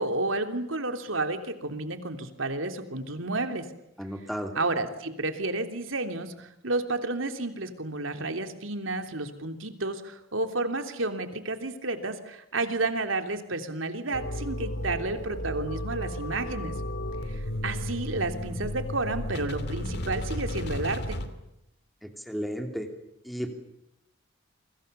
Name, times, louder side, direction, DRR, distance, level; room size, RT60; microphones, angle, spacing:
voice 1, 0.0-3.7 4.5-16.7 17.3-21.2, right 2 dB, 80° right, 7 dB, 3.2 m, -31 dB
voice 2, 4.0-4.5 22.0-22.9 23.2-23.5, equal, ahead, 4 dB, 3.3 m, -33 dB
sound 1, 14.1-21.3, left 1 dB, 55° left, 2.8 m, -33 dB
28.5 x 25.5 x 6.9 m, 0.87 s
head